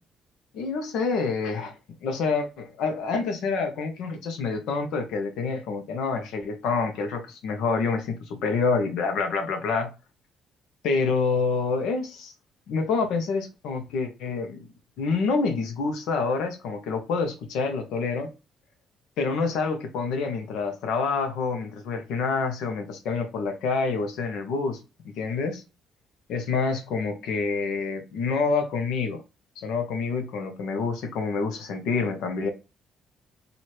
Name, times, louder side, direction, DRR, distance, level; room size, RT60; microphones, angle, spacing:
voice 1, 0.5-1.7 2.0-9.9 10.8-12.3 12.7-14.7 15.0-18.3 19.2-25.6 26.3-29.2 29.6-32.5, left 4 dB, 80° left, 0.9 m, -27 dB
3.2 x 2.7 x 4.3 m
cardioid pair, 165°, 0 cm